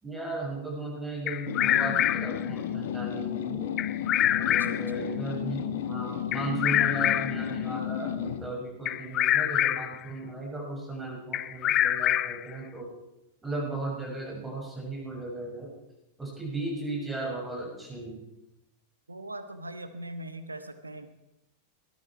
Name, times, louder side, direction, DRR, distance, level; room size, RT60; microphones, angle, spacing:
voice 1, 0.0-3.7 4.3-12.9 13.4-15.7 16.2-18.2, right 2 dB, 10° right, -2 dB, 6.6 m, -36 dB
Bird vocalization bird call bird song, 1.3-2.4 3.8-4.9 6.3-7.5 8.9-10.0 11.3-12.5, left 12 dB, 35° left, 0.5 m, -26 dB
sound 1, 1.5-8.5, left 9 dB, 55° left, 1.2 m, -33 dB
voice 2, 4.4-5.1 11.6-12.0 19.1-21.1, right 1 dB, 80° right, 10 dB, 1.2 m, -41 dB
19.0 x 13.0 x 4.6 m, 0.90 s
figure-of-eight pair, 90°, 0 cm